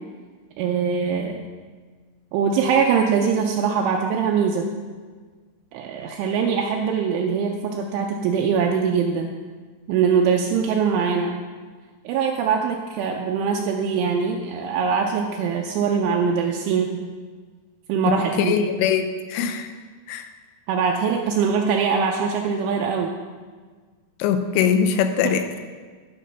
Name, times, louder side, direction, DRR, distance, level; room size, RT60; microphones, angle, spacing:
voice 1, 0.6-1.4 2.3-4.7 5.7-9.3 9.9-11.4 12.1-17.1 17.9-18.6 20.7-23.1 25.2-25.4, right 6 dB, 85° right, 1 dB, 2.9 m, -22 dB
voice 2, 18.1-19.7 20.1-20.3 24.2-25.6, left 7 dB, 85° left, 8 dB, 3.3 m, -22 dB
13.5 x 6.6 x 5.6 m, 1.5 s
omnidirectional pair, 5.9 m